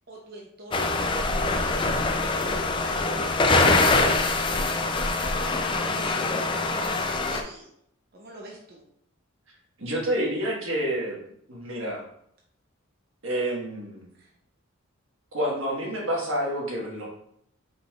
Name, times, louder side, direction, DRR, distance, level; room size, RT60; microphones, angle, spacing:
voice 1, 0.1-7.7 8.1-8.8 14.1-14.3, right 1 dB, 50° right, -2 dB, 0.8 m, -43 dB
sound 1, 0.7-7.4, left 3 dB, 25° left, 0.3 m, -24 dB
voice 2, 9.8-11.2 11.5-12.0 13.2-14.1 15.3-17.1, right 1 dB, 70° right, -2 dB, 1.4 m, -28 dB
5.1 x 4.1 x 2.3 m, 0.71 s
head